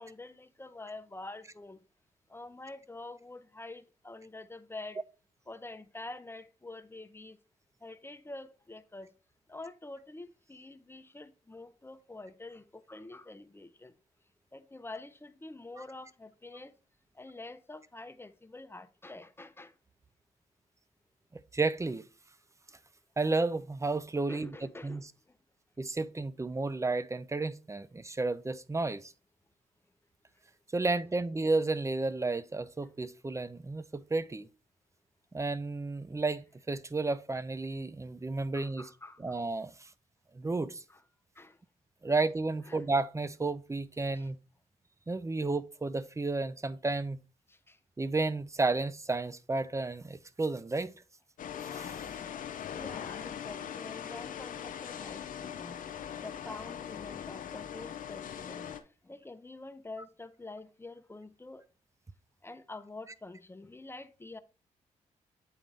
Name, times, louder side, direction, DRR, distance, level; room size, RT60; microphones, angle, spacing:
voice 1, 0.0-1.8 2.3-5.0 5.5-7.4 7.8-9.1 9.5-13.9 14.5-16.7 17.1-19.7 24.3-25.4 30.8-30.9 38.5-39.4 40.9-41.0 41.4-41.6 42.6-42.8 44.1-44.3 47.5-47.8 52.2-52.3 52.7-55.8 56.2-58.8 59.0-61.7 62.4-64.4, left 2 dB, 15° left, 0.7 m, -47 dB
voice 2, 21.3-22.1 23.2-24.6 24.8-25.0 25.8-29.1 30.7-34.5 35.3-38.8 39.2-39.9 40.3-40.8 42.0-44.4 45.1-47.2 48.0-50.9 51.7-51.9, right 3 dB, 20° right, 0.5 m, -32 dB
sound 1, 51.4-58.8, left 9 dB, 65° left, 0.7 m, -41 dB
8.4 x 3.8 x 3.3 m
supercardioid pair, 55°, 15 cm